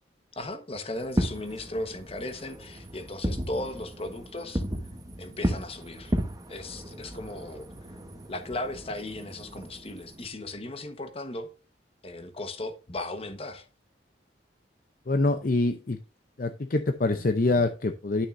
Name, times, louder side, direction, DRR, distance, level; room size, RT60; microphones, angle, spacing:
voice 1, 0.3-4.6 5.2-6.2 6.5-8.0 8.3-11.5 12.0-13.7, left 2 dB, 30° left, 1.2 m, -36 dB
Fireworks, 1.0-10.3, equal, 20° right, 1.0 m, -34 dB
voice 2, 15.1-16.0 16.4-18.3, left 2 dB, 50° left, 0.6 m, -25 dB
11.5 x 6.4 x 2.6 m
head